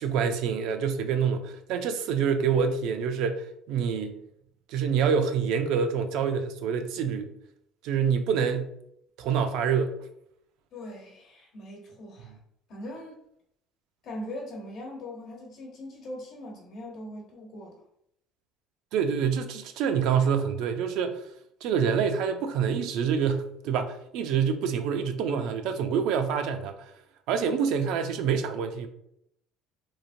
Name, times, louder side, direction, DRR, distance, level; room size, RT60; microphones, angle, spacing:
voice 1, 0.0-4.1 4.7-7.3 7.8-8.7 9.2-10.0 18.9-21.2 21.6-26.7 27.3-28.9, right 7 dB, 75° right, 7 dB, 0.3 m, -26 dB
voice 2, 10.7-12.4 12.7-13.2 14.0-17.8, left 1 dB, 60° left, -1 dB, 0.9 m, -41 dB
3.1 x 2.1 x 2.5 m, 0.75 s
supercardioid pair, 100°, 0 cm